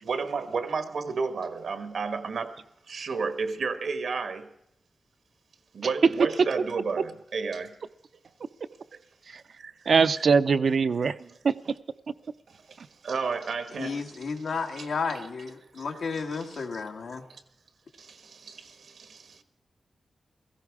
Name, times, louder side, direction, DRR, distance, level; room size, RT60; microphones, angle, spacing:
voice 1, 0.0-4.5 5.7-7.7 8.9-9.0 9.6-9.7 11.2-11.3 12.5-14.2 14.7-14.9 15.7-16.8 17.3-17.4 18.0-19.4, right 5 dB, 80° right, 1.4 m, -33 dB
voice 2, 9.9-11.1 11.4-11.6, right 5 dB, 65° right, 0.5 m, -21 dB
voice 3, 13.8-17.2, left 5 dB, 90° left, 1.7 m, -32 dB
16.5 x 15.5 x 4.8 m
wide cardioid pair, 120°, 0 cm